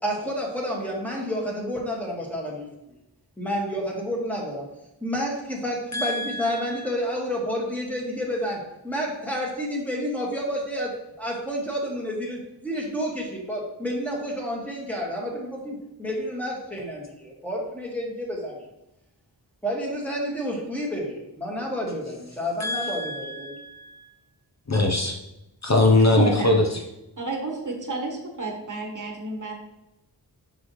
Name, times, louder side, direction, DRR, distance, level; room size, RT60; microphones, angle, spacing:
voice 1, 0.0-2.7 3.4-4.7 5.0-18.6 19.6-23.6, equal, 5° left, -2 dB, 1.8 m, -30 dB
voice 2, 5.9-6.9 22.6-24.1 24.7-25.2 25.6-26.6, left 2 dB, 40° left, 1 dB, 0.8 m, -22 dB
voice 3, 26.1-26.6 27.2-29.5, right 2 dB, 45° right, 1 dB, 1.2 m, -30 dB
6.2 x 6.1 x 3.1 m, 0.91 s
wide cardioid pair, 85°, 42 cm